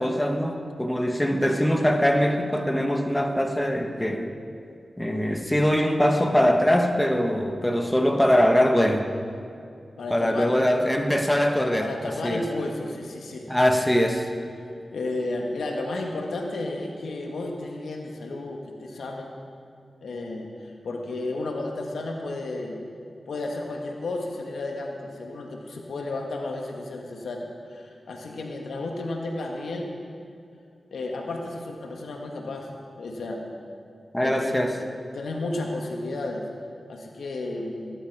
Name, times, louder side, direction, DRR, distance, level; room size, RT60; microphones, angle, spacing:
voice 1, 0.0-4.3 5.0-9.1 10.1-11.9 12.2-12.4 13.5-14.3 34.1-34.8, equal, 10° left, 4 dB, 1.4 m, -22 dB
voice 2, 10.0-10.7 11.8-13.5 14.9-19.3 20.0-22.8 23.3-29.9 30.9-32.7 33.0-33.4 34.2-36.4 36.9-37.9, left 2 dB, 85° left, 1 dB, 1.6 m, -32 dB
17.5 x 11.0 x 4.8 m, 2.4 s
cardioid pair, 50°, 0 cm